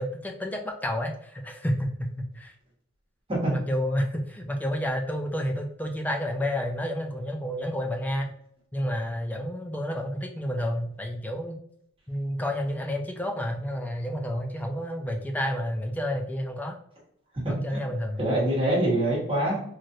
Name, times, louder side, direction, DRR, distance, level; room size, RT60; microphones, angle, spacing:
voice 1, 0.0-2.5 3.5-8.3 8.7-11.6 12.1-16.8 17.5-18.2, equal, 5° left, 3 dB, 0.3 m, -30 dB
voice 2, 17.4-17.8 18.2-19.6, right 1 dB, 25° right, -6 dB, 1.3 m, -25 dB
3.1 x 2.5 x 2.7 m, 0.68 s
head